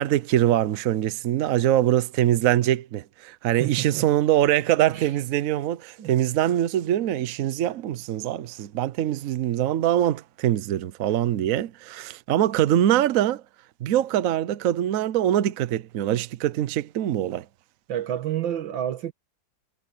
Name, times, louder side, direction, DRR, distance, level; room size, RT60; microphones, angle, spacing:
voice 1, 0.0-13.4 13.8-17.5, right 12 dB, 60° right, 0.9 m, -23 dB
voice 2, 3.6-4.1 4.9-5.1 6.0-6.1 17.9-19.1, right 11 dB, 90° right, 2.0 m, -29 dB
omnidirectional pair, 2.0 m